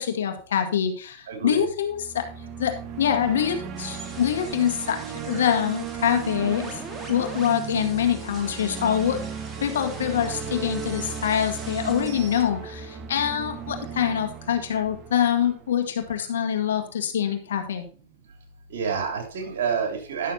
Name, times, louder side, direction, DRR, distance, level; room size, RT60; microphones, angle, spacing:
voice 1, 0.0-2.3 2.6-5.0 5.3-6.8 7.1-9.2 9.6-17.9, left 9 dB, 85° left, 6 dB, 1.9 m, -25 dB
voice 2, 1.3-1.6 18.7-20.3, right 6 dB, 75° right, 4 dB, 3.3 m, -28 dB
sound 1, 1.8-16.0, right 7 dB, 40° right, 1.3 m, -36 dB
sound 2, 3.8-12.4, right 2 dB, 15° right, 2.9 m, -43 dB
11.5 x 6.8 x 4.1 m, 0.38 s
hypercardioid pair, 115°, 0 cm